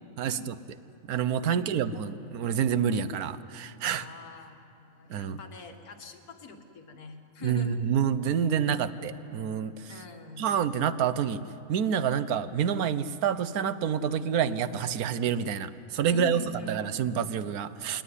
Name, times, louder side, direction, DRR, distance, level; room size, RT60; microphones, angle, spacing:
voice 1, 0.2-0.5 1.1-4.1 5.1-5.4 7.4-9.9 10.4-11.4 11.7-16.4 16.7-18.0, right 8 dB, 85° right, 14 dB, 1.3 m, -28 dB
voice 2, 1.5-1.8 3.9-7.8 9.9-10.7 16.1-16.8, left 3 dB, 85° left, 5 dB, 2.1 m, -44 dB
22.5 x 18.0 x 9.9 m, 2.9 s
omnidirectional pair, 1.5 m